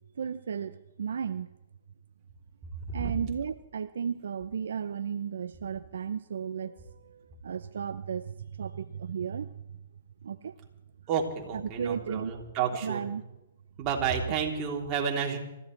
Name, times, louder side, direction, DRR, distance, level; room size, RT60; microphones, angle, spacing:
voice 1, 0.2-1.5 2.9-9.5 10.2-10.6 11.5-12.3 12.7-13.2, right 7 dB, 75° right, 12 dB, 0.5 m, -34 dB
voice 2, 11.1-13.1 13.8-15.4, right 7 dB, 35° right, -1 dB, 3.3 m, -30 dB
26.5 x 14.5 x 3.3 m, 0.94 s
hypercardioid pair, 130°, 0 cm